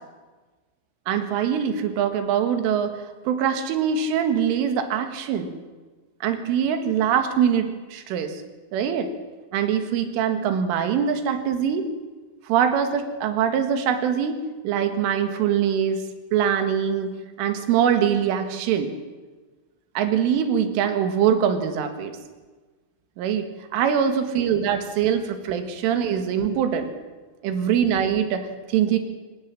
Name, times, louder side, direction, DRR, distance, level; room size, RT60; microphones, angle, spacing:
voice 1, 1.1-5.5 6.2-8.4 8.7-9.1 9.5-11.8 12.5-14.4 14.6-16.0 16.3-17.1 17.4-18.9 20.0-22.1 23.2-23.5 23.7-26.9 27.4-29.0, right 8 dB, 90° right, 7 dB, 4.3 m, -23 dB
24.0 x 17.5 x 7.5 m, 1.3 s
omnidirectional pair, 5.5 m